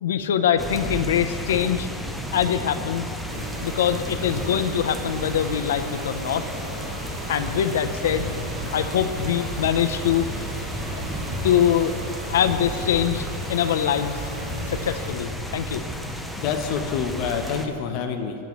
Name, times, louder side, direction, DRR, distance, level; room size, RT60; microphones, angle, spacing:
voice 1, 0.0-1.9 2.3-3.1 3.6-6.4 7.3-8.3 8.7-10.3 11.4-11.9 12.3-14.2 14.7-15.8, left 9 dB, 85° left, 10 dB, 0.6 m, -23 dB
sound 1, 0.6-17.7, equal, ahead, 0.5 m, -32 dB
sound 2, 3.3-15.1, right 3 dB, 75° right, 1.8 m, -38 dB
voice 2, 16.4-18.4, left 6 dB, 35° left, 4 dB, 0.9 m, -27 dB
17.5 x 9.2 x 3.1 m, 2.4 s
supercardioid pair, 180°, 0 cm